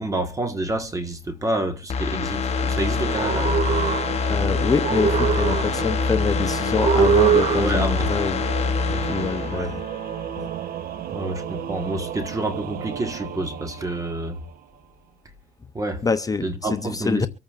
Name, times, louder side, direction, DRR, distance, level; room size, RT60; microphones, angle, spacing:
voice 1, 0.0-3.5 7.6-8.1 8.9-9.2 9.5-9.7 11.1-14.4 15.7-16.0 16.4-17.2, right 1 dB, 20° right, 1.4 m, -28 dB
sound 1, 1.9-10.6 10.9-11.0, left 5 dB, 40° left, 1.1 m, -25 dB
Singing / Musical instrument, 2.3-14.8, right 11 dB, 60° right, 0.8 m, -33 dB
sound 2, 3.0-4.4 4.8-6.0 6.7-8.0, right 7 dB, 45° right, 2.2 m, -22 dB
voice 2, 4.3-8.4 9.1-9.8 10.4-10.5 16.0-17.3, left 5 dB, 20° left, 0.6 m, -25 dB
24.5 x 8.7 x 2.4 m
cardioid pair, 110°, 17 cm